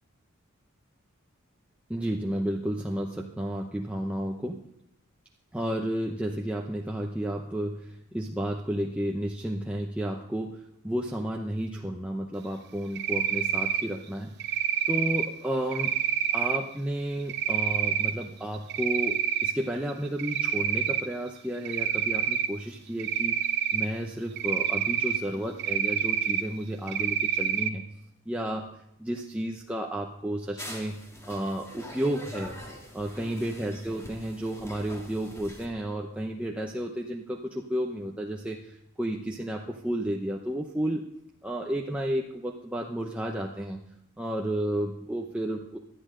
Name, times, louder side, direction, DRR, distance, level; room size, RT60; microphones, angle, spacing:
voice 1, 1.9-4.6 5.5-15.9 16.3-23.4 23.7-27.9 28.3-28.7 29.0-32.6 32.9-41.1 41.4-43.8 44.2-45.8, right 1 dB, 5° right, 0 dB, 0.7 m, -32 dB
Cricket, 12.9-13.8 14.4-15.3 15.7-16.6 17.3-18.1 18.5-19.5 19.9-21.0 21.6-22.5 23.0-23.9 24.4-25.2 25.6-26.4 26.9-27.7, right 8 dB, 55° right, 0.8 m, -27 dB
sound 1, 30.6-35.7, equal, 15° left, 1.8 m, -44 dB
18.0 x 11.5 x 3.8 m, 0.76 s
head